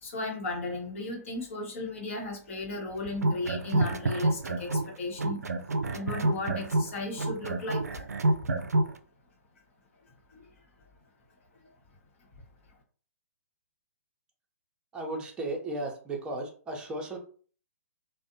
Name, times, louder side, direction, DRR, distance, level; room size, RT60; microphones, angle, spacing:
voice 1, 0.0-5.4 5.9-8.1 10.3-10.4, left 2 dB, 55° left, 1 dB, 1.0 m, -35 dB
sound 1, 3.1-4.9 5.2-8.9, right 2 dB, 80° right, 0.3 m, -27 dB
voice 2, 14.9-17.2, right 2 dB, 10° right, 0 dB, 0.6 m, -35 dB
2.5 x 2.1 x 2.6 m, 0.43 s
figure-of-eight pair, 125°, 8 cm